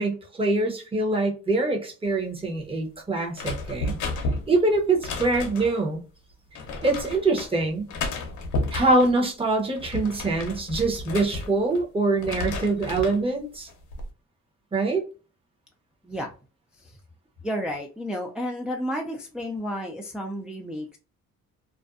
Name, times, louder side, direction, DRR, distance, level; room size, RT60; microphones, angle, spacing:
voice 1, 0.0-4.0 4.5-6.0 6.8-7.9 8.7-13.7 14.7-15.0, right 2 dB, 20° right, 0.9 m, -24 dB
sound 1, 3.3-5.8 6.6-7.5 7.9-9.2 9.6-11.8 12.1-13.2 13.7-14.1, left 2 dB, 75° left, 0.7 m, -32 dB
voice 2, 16.0-16.3 16.7-17.0 17.4-21.0, equal, 5° right, 0.4 m, -32 dB
2.5 x 2.2 x 2.4 m
cardioid pair, 90°, 30 cm